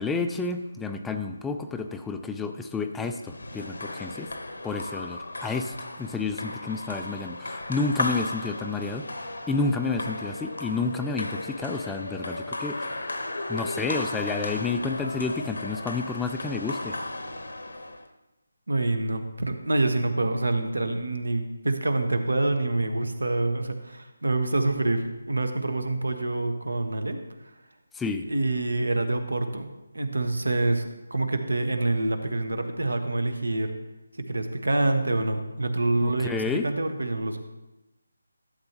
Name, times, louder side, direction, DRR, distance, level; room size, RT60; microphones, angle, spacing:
voice 1, 0.0-4.3 4.6-9.1 9.5-13.0 13.5-17.0 27.9-28.2 36.0-36.7, left 4 dB, 5° left, 6 dB, 0.3 m, -30 dB
sound 1, 3.2-18.1, left 2 dB, 80° left, 1.0 m, -35 dB
voice 2, 18.7-27.2 28.3-33.7 34.2-37.4, right 2 dB, 85° right, 7 dB, 1.2 m, -26 dB
11.5 x 7.8 x 3.0 m, 1.0 s
figure-of-eight pair, 160°, 0 cm